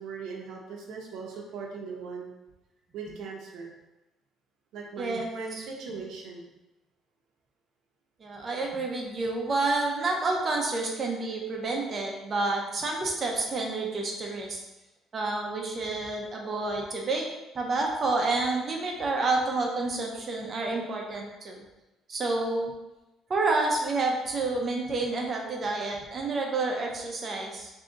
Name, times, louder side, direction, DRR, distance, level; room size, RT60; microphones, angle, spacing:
voice 1, 0.0-2.3 2.9-3.7 4.7-6.4, right 5 dB, 70° right, -2 dB, 0.7 m, -39 dB
voice 2, 5.0-5.3 8.2-14.6 15.1-17.3 17.5-21.6 22.1-22.7 23.3-27.7, right 3 dB, 30° right, 0 dB, 0.7 m, -29 dB
3.7 x 2.8 x 3.8 m, 1.0 s
cardioid pair, 160°, 0 cm